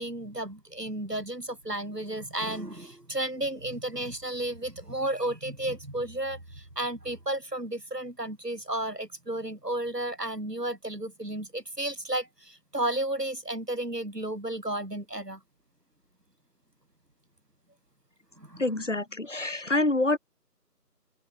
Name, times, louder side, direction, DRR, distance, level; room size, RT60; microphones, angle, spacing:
voice 1, 0.0-15.4 18.4-18.7, right 1 dB, 75° right, 5.7 m, -33 dB
voice 2, 18.6-20.2, left 2 dB, 50° left, 1.3 m, -26 dB
open air
figure-of-eight pair, 175°, 48 cm